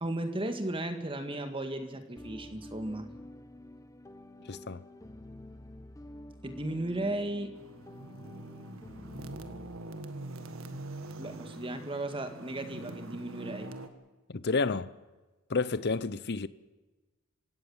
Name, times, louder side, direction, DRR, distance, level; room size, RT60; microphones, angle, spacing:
voice 1, 0.0-3.1 6.4-7.6 11.2-13.7, right 1 dB, 25° right, 1.9 m, -35 dB
sound 1, 2.2-9.8, left 1 dB, 15° left, 0.9 m, -49 dB
voice 2, 4.5-4.8 14.3-14.9 15.5-16.5, left 4 dB, 50° left, 0.7 m, -30 dB
sound 2, 7.6-13.9, right 2 dB, 65° right, 1.6 m, -44 dB
27.0 x 17.0 x 7.2 m
head